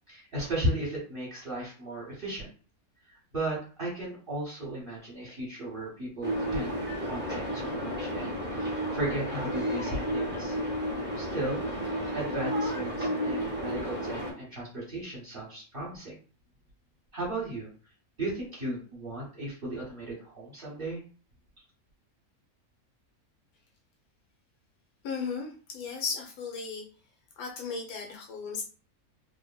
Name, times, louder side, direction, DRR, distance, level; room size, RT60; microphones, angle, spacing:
voice 1, 0.1-2.5 3.1-6.8 7.1-10.6 11.2-16.2 17.1-17.7 18.2-21.0, right 1 dB, 45° right, -6 dB, 1.0 m, -35 dB
sound 1, 6.2-14.3, equal, 15° right, 0.3 m, -32 dB
voice 2, 25.0-26.9 27.4-28.6, left 5 dB, 90° left, 1 dB, 1.1 m, -35 dB
3.3 x 2.1 x 2.2 m, 0.40 s
omnidirectional pair, 1.5 m